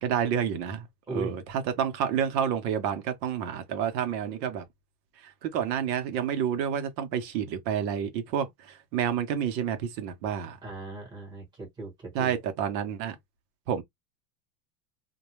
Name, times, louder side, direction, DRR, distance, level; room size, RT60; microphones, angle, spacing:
voice 1, 0.0-1.4 1.8-4.6 5.2-10.6 12.1-13.2 13.7-13.8, right 8 dB, 80° right, 0.8 m, -29 dB
voice 2, 10.6-12.4, right 2 dB, 10° right, 0.9 m, -38 dB
2.2 x 2.2 x 3.0 m
supercardioid pair, 170°, 49 cm